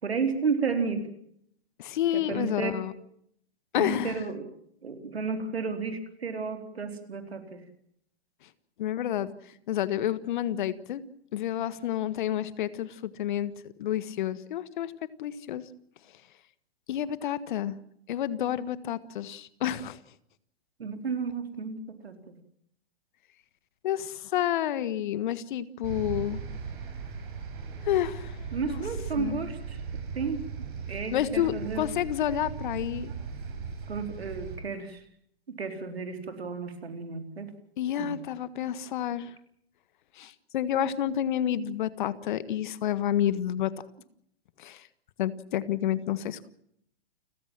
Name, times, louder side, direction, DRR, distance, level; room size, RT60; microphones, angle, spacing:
voice 1, 0.0-1.1 2.1-2.8 3.8-4.5 4.8-7.6 20.8-22.4 28.5-29.8 30.1-30.4 30.9-31.9 33.9-35.0 35.5-37.5 38.0-38.1, right 5 dB, 80° right, 7 dB, 4.3 m, -32 dB
voice 2, 1.8-2.9 3.7-4.1 8.8-9.3 9.7-11.0 11.3-13.5 13.8-14.9 15.2-15.6 16.9-17.8 18.1-20.0 23.8-26.4 27.8-28.4 28.6-28.8 29.2-29.4 31.1-33.1 37.8-39.3 40.2-43.7 44.6-44.8 45.2-46.5, left 11 dB, 50° left, 16 dB, 1.5 m, -29 dB
sound 1, 25.8-34.6, right 6 dB, 55° right, 7.8 m, -38 dB
29.5 x 15.0 x 7.6 m, 0.70 s
hypercardioid pair, 125°, 31 cm